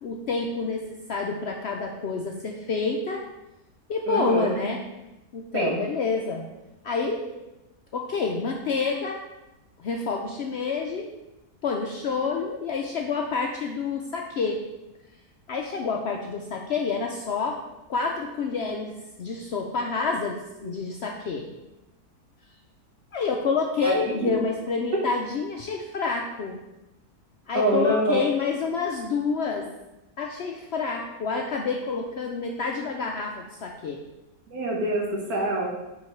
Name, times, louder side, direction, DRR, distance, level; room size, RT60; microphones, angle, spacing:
voice 1, 0.0-3.2 3.9-4.8 5.3-6.5 6.8-7.2 7.9-9.2 9.8-11.1 11.6-14.6 15.5-17.6 17.9-21.5 23.1-26.6 27.5-29.7 30.2-34.0, left 4 dB, 80° left, 1 dB, 0.5 m, -28 dB
voice 2, 4.1-4.5 5.5-5.8 20.6-20.7 23.8-23.9 24.2-24.3 27.5-28.2 34.5-35.7, right 1 dB, 65° right, -3 dB, 1.8 m, -25 dB
9.4 x 3.8 x 3.2 m, 0.99 s
omnidirectional pair, 1.7 m